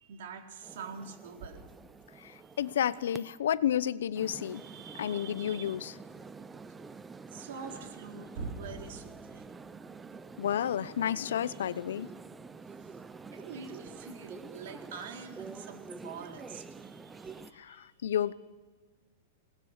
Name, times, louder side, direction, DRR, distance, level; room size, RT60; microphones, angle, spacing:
voice 1, 0.0-1.6 4.5-5.8 7.3-9.6 11.4-11.6 12.8-13.0 13.3-18.2, right 5 dB, 60° right, 3 dB, 3.8 m, -45 dB
sound 1, 0.6-3.4 4.1-17.5, right 4 dB, 10° right, 0.6 m, -48 dB
voice 2, 2.6-4.6 5.0-5.9 10.4-12.1 17.6-17.8 18.0-18.3, left 10 dB, 80° left, 17 dB, 0.8 m, -30 dB
27.5 x 19.5 x 6.7 m, 1.4 s
supercardioid pair, 170°, 0 cm